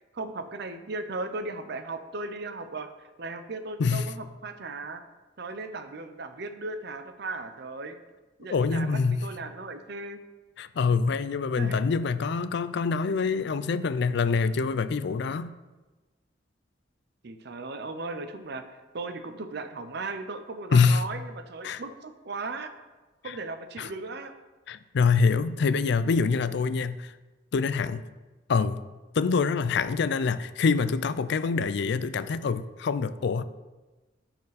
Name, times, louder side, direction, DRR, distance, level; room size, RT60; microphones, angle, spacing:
voice 1, 0.1-5.0 5.4-8.0 8.4-10.2 11.6-11.8 17.2-22.7 23.2-24.4, right 3 dB, 60° right, 9 dB, 0.7 m, -37 dB
voice 2, 3.8-4.1 8.5-9.3 10.6-15.5 20.7-21.0 21.6-21.8 23.2-23.4 23.8-23.9 24.7-27.1 27.5-28.0 28.5-28.8 29.1-33.4, left 5 dB, 65° left, 14 dB, 0.4 m, -25 dB
13.5 x 4.5 x 4.1 m, 1.2 s
head